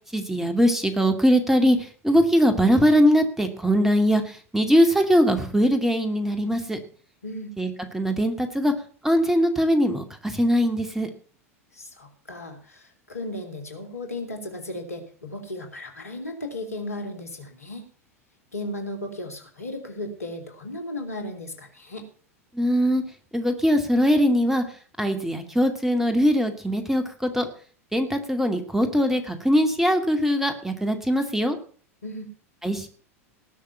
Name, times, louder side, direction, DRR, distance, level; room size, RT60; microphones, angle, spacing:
voice 1, 0.1-1.8 2.0-4.2 4.5-6.8 7.6-8.7 9.0-11.1 22.6-23.0 23.3-24.6 25.0-27.5 27.9-31.5 32.6-32.9, equal, 5° right, 7 dB, 2.4 m, -21 dB
voice 2, 11.7-17.9 18.5-22.1 32.0-32.3, left 1 dB, 80° left, 5 dB, 3.3 m, -35 dB
19.0 x 6.6 x 6.9 m, 0.43 s
figure-of-eight pair, 85°, 8 cm